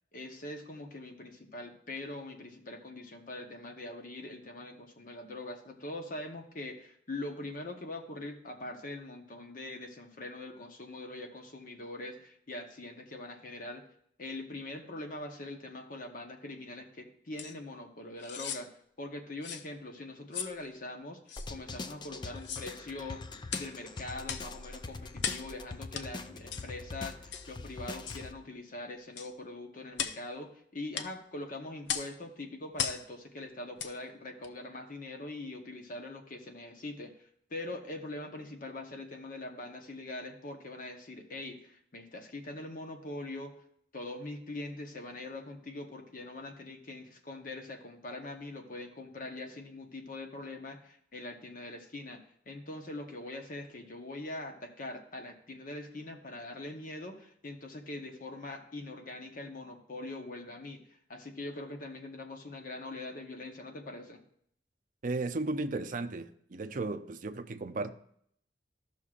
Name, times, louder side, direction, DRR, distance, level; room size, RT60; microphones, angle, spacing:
voice 1, 0.1-13.8 14.2-18.7 19.0-21.2 21.5-23.2 23.5-43.5 43.9-52.2 52.5-64.2, left 2 dB, 50° left, 1.0 m, -43 dB
sound 1, 17.4-17.5 18.2-18.6 19.4-19.7 20.3-20.6 21.3-21.5 22.3-22.7 23.5-23.7 24.2-24.5 25.2-25.5 25.9-26.1 26.5-26.7 27.3-27.5 28.1-28.2 29.2-29.3 29.9-30.2 30.9-31.1 31.9-32.1 32.8-33.0 33.8-33.9 34.4-34.5, left 8 dB, 75° left, 0.5 m, -36 dB
sound 2, 21.4-28.3, left 3 dB, 25° left, 0.4 m, -43 dB
voice 2, 65.0-67.9, right 2 dB, 45° right, 0.5 m, -35 dB
14.0 x 6.1 x 2.4 m
head